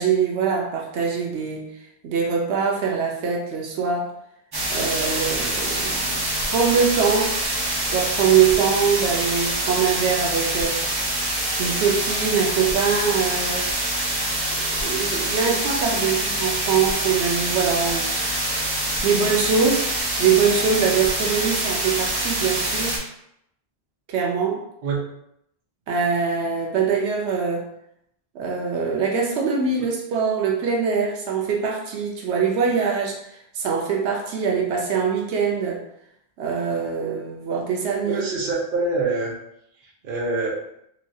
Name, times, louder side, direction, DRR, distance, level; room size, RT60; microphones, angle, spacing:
voice 1, 0.0-1.7 2.0-4.1 4.7-7.4 7.9-10.8 11.6-13.7 14.5-18.1 19.0-19.9 20.2-23.0 24.1-24.6 25.9-27.7 28.3-35.8 36.4-38.2, right 6 dB, 85° right, -1 dB, 0.9 m, -23 dB
sound 1, 4.5-23.0, right 1 dB, 35° right, 0.4 m, -25 dB
voice 2, 38.1-39.3 40.0-40.6, right 3 dB, 60° right, -2 dB, 0.8 m, -25 dB
3.1 x 2.3 x 2.6 m, 0.76 s
omnidirectional pair, 1.1 m